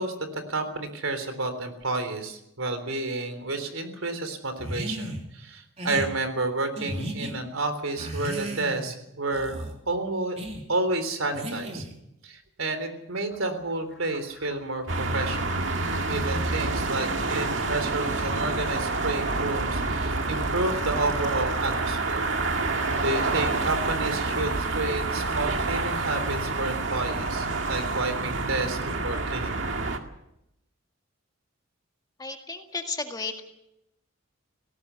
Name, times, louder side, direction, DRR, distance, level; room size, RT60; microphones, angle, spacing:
voice 1, 0.0-10.4 10.7-11.8 12.2-15.7 16.1-22.3 23.0-29.6, right 2 dB, 80° right, 9 dB, 3.6 m, -30 dB
sound 1, 4.6-5.2 5.8-6.1 6.8-7.3 8.0-8.9 9.3-9.8 10.4-10.6 11.3-12.0, right 1 dB, 30° right, 3.1 m, -34 dB
sound 2, 13.3-22.8, left 4 dB, 55° left, 5.0 m, -50 dB
sound 3, 14.9-30.0, right 3 dB, 60° right, 2.1 m, -28 dB
voice 2, 32.2-33.4, left 4 dB, 20° left, 4 dB, 1.9 m, -33 dB
19.5 x 17.5 x 8.3 m, 0.82 s
head